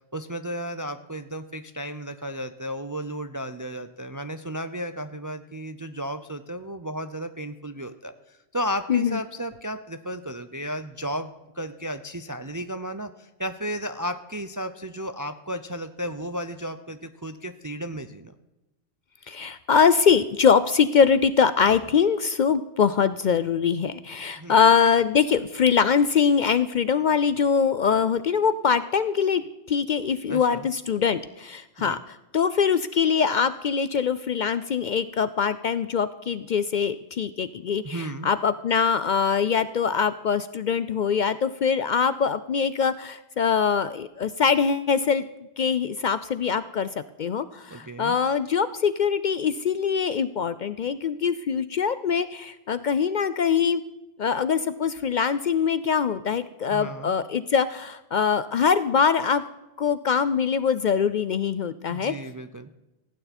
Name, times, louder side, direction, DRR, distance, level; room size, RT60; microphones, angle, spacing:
voice 1, 0.1-18.3 24.4-24.6 30.3-30.7 31.8-32.0 37.8-38.3 47.7-48.2 56.7-57.1 61.9-62.7, equal, 30° right, 10 dB, 0.4 m, -34 dB
voice 2, 19.3-29.4 29.7-45.2 45.6-46.9 47.2-53.8 54.2-59.4 59.8-62.1, left 6 dB, 55° left, 14 dB, 0.5 m, -23 dB
16.0 x 9.2 x 4.3 m, 0.99 s
omnidirectional pair, 1.1 m